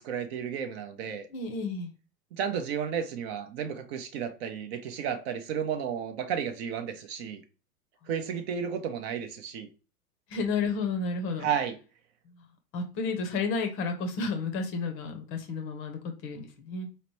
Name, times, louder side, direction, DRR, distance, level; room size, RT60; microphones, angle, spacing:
voice 1, 0.0-1.3 2.3-7.4 8.1-9.7 11.4-11.7, right 7 dB, 40° right, 0.7 m, -32 dB
voice 2, 1.3-1.9 10.3-11.5 12.3-12.4 12.7-16.9, left 4 dB, 30° left, 0.7 m, -32 dB
4.3 x 2.9 x 3.0 m
hypercardioid pair, 110°, 47 cm